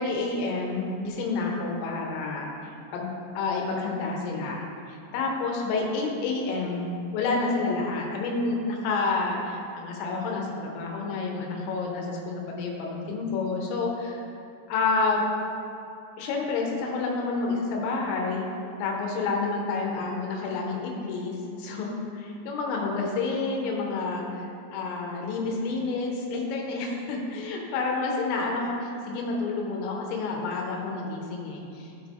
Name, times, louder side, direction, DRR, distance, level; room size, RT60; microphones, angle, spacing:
voice 1, 0.0-14.3 14.7-15.3 16.2-18.5 18.8-32.1, left 3 dB, 90° left, 0 dB, 3.6 m, -29 dB
13.5 x 5.2 x 3.4 m, 2.7 s
omnidirectional pair, 5.9 m